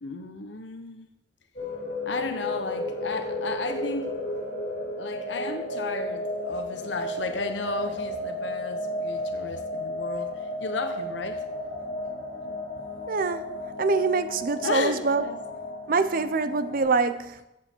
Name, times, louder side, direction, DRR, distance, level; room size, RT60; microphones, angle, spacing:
voice 1, 0.0-1.1 2.1-4.1 5.0-11.4 14.6-15.4, left 3 dB, 75° left, 1.0 m, -34 dB
sound 1, 1.5-16.8, left 1 dB, 45° left, 4.5 m, -33 dB
voice 2, 13.1-13.5 13.8-15.2 15.9-17.4, right 4 dB, 50° right, 0.6 m, -25 dB
14.0 x 8.1 x 4.5 m
head